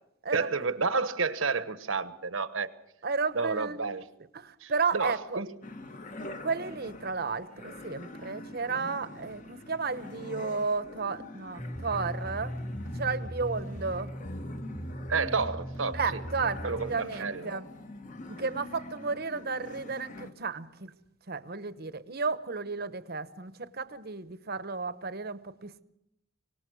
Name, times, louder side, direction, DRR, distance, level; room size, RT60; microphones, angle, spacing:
voice 1, 0.3-2.7 3.3-4.0 4.6-5.5 15.1-16.2 16.6-17.5, right 4 dB, 70° right, 1.2 m, -30 dB
voice 2, 3.0-4.0 4.3-5.4 6.3-12.6 13.0-14.1 15.9-17.7 18.3-20.9 21.3-25.8, right 4 dB, 50° right, 1.0 m, -33 dB
sound 1, 5.6-20.3, left 2 dB, 35° left, 1.3 m, -45 dB
sound 2, 11.6-16.9, equal, 15° left, 1.4 m, -38 dB
24.5 x 19.0 x 6.3 m
head